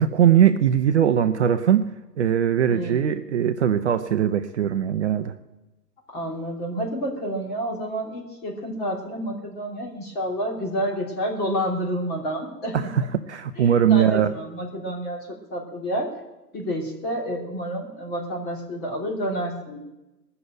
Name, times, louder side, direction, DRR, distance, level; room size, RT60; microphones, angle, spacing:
voice 1, 0.0-1.8 2.2-5.3 12.7-13.0 13.3-14.3, right 9 dB, 45° right, 10 dB, 0.7 m, -20 dB
voice 2, 2.7-3.1 6.1-12.9 13.6-16.1 16.5-19.8, equal, 20° left, -1 dB, 3.1 m, -29 dB
20.5 x 6.9 x 8.9 m, 1.0 s
figure-of-eight pair, 125°, 49 cm